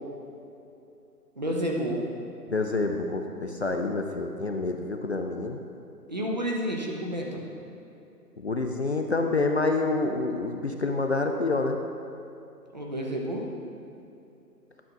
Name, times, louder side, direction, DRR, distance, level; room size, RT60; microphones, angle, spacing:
voice 1, 1.4-2.0 6.1-7.4 12.7-13.5, equal, 30° right, -1 dB, 0.6 m, -30 dB
voice 2, 2.5-5.6 8.4-11.8, left 3 dB, 45° left, 4 dB, 0.4 m, -27 dB
11.0 x 5.7 x 3.7 m, 2.8 s
figure-of-eight pair, 155°, 48 cm